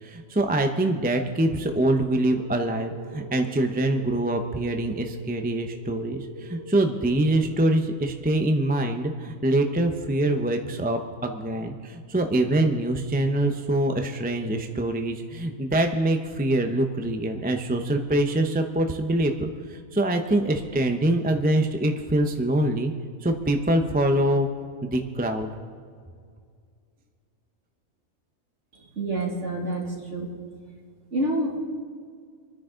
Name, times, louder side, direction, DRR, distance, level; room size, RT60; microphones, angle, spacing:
voice 1, 0.0-22.9 23.2-24.5 24.8-25.5, right 1 dB, 10° right, 4 dB, 0.7 m, -24 dB
sound 1, 2.4-10.7, right 2 dB, 65° left, 3.2 m, -45 dB
voice 2, 29.0-30.3 31.1-31.6, right 1 dB, 55° right, -1 dB, 2.7 m, -27 dB
26.5 x 10.0 x 3.9 m, 2.1 s
omnidirectional pair, 1.5 m